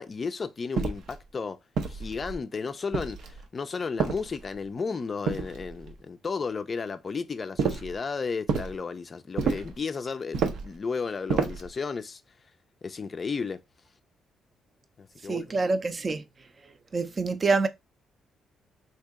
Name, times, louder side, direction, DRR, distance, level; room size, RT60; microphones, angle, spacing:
voice 1, 0.0-1.6 1.9-12.2 12.8-13.6 15.0-15.4, left 5 dB, 35° left, 0.4 m, -33 dB
sound 1, 0.8-1.2 1.8-2.4 2.9-3.4 4.0-4.6 5.3-5.9 7.6-8.0 8.5-8.8 9.4-9.8 10.3-10.7 11.3-11.7, right 5 dB, 75° right, 0.6 m, -29 dB
voice 2, 15.3-16.2 16.9-17.7, right 3 dB, 35° right, 0.5 m, -26 dB
2.8 x 2.8 x 3.5 m
cardioid pair, 90°, 0 cm